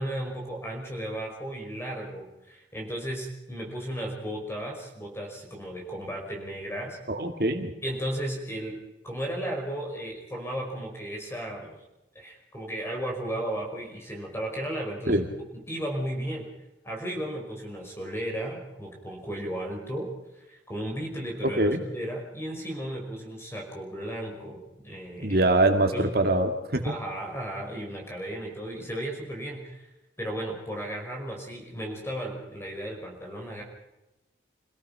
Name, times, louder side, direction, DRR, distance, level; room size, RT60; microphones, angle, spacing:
voice 1, 0.0-7.0 7.8-8.8 9.0-11.8 12.2-15.2 15.5-16.4 16.8-20.1 20.5-25.4 25.9-26.1 26.8-29.9 30.2-33.6, right 1 dB, 15° left, 1 dB, 5.3 m, -35 dB
voice 2, 7.1-7.7 15.1-15.2 21.6-21.8 25.2-26.9, right 1 dB, 55° right, 5 dB, 2.4 m, -23 dB
28.0 x 17.0 x 5.7 m, 0.98 s
head